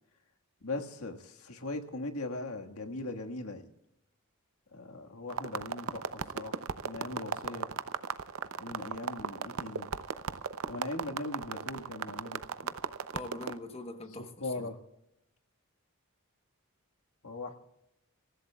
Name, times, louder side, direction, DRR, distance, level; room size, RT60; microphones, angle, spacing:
voice 1, 0.6-3.7 4.7-7.7 8.6-9.9 10.7-12.4 14.2-14.8 17.2-17.6, left 2 dB, 80° left, 1.6 m, -40 dB
sound 1, 5.3-13.6, right 6 dB, 75° right, 0.7 m, -36 dB
voice 2, 13.1-14.7, left 2 dB, 25° left, 1.0 m, -43 dB
26.5 x 15.0 x 2.3 m
head